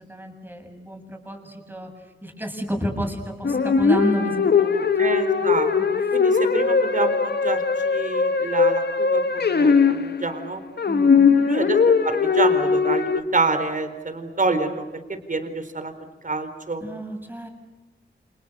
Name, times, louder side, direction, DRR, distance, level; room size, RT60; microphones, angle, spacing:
voice 1, 0.0-5.0 5.4-5.5 5.8-5.9 10.9-11.4 16.8-17.5, equal, 10° right, 3 dB, 7.3 m, -31 dB
sound 1, 3.4-10.5 10.8-13.2, left 5 dB, 60° left, 1.9 m, -20 dB
voice 2, 5.0-5.7 6.1-10.6 11.4-11.8 12.0-14.8 15.3-15.9 16.2-16.8, right 3 dB, 45° right, 9 dB, 4.1 m, -27 dB
29.5 x 28.0 x 6.7 m, 1.1 s
wide cardioid pair, 95°, 19 cm